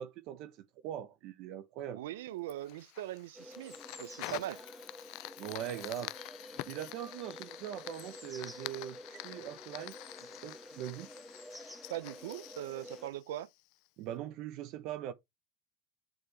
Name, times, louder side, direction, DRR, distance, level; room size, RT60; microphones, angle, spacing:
voice 1, 0.0-2.0 5.4-6.1 6.7-10.0 10.2-11.1 14.0-15.1, right 11 dB, 55° right, 0.9 m, -41 dB
voice 2, 1.9-4.6 11.9-13.5, right 14 dB, 85° right, 0.7 m, -41 dB
Fire, 2.5-13.9, left 22 dB, 60° left, 0.4 m, -47 dB
sound 1, 3.3-13.1, equal, ahead, 1.6 m, -50 dB
7.0 x 6.1 x 3.4 m
supercardioid pair, 125°, 0 cm